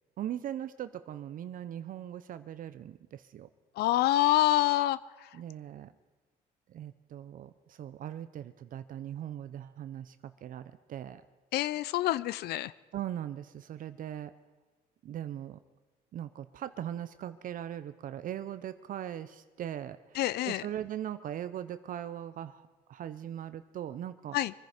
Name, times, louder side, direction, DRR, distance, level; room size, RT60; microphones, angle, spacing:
voice 1, 0.2-3.5 5.3-5.9 6.7-11.2 12.9-14.3 15.0-15.6 16.1-24.4, right 11 dB, 55° right, 12 dB, 0.6 m, -40 dB
voice 2, 3.8-5.0 11.5-12.7 20.2-20.6 24.3-24.5, left 15 dB, 70° left, 18 dB, 0.4 m, -26 dB
24.0 x 10.5 x 5.0 m, 1.3 s
cardioid pair, 110°, 17 cm